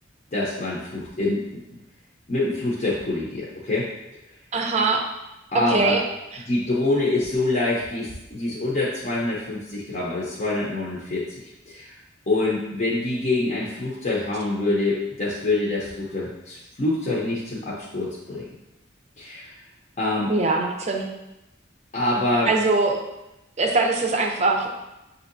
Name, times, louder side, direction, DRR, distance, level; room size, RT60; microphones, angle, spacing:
voice 1, 0.3-1.6 2.3-3.9 5.5-5.9 6.5-11.4 11.7-12.0 12.3-18.5 19.2-19.6 20.0-20.3 21.9-22.5, left 2 dB, 40° left, -5 dB, 0.7 m, -25 dB
voice 2, 4.5-5.0 5.5-6.0 6.3-6.5 20.3-21.1 22.5-23.0 23.6-24.7, right 3 dB, 35° right, 3 dB, 0.5 m, -22 dB
6.3 x 2.7 x 2.6 m, 0.94 s
head